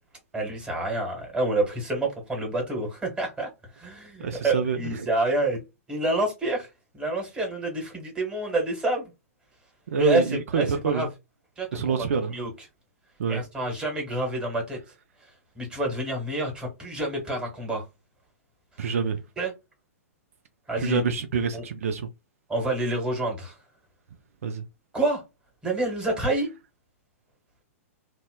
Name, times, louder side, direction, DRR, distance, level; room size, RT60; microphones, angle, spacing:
voice 1, 0.3-3.5 3.7-5.6 5.9-6.7 6.9-9.1 9.9-11.1 11.6-12.5 13.3-14.8 15.5-17.8 19.4-19.5 20.7-21.1 21.5-21.6 22.5-23.5 24.9-25.2 25.6-26.5, right 2 dB, 10° right, 1.4 m, -28 dB
voice 2, 4.2-5.0 9.9-11.1 11.7-12.3 13.2-13.4 18.8-19.2 20.8-22.1 24.4-24.6, right 6 dB, 70° right, 0.4 m, -26 dB
2.7 x 2.1 x 2.2 m
hypercardioid pair, 115°, 8 cm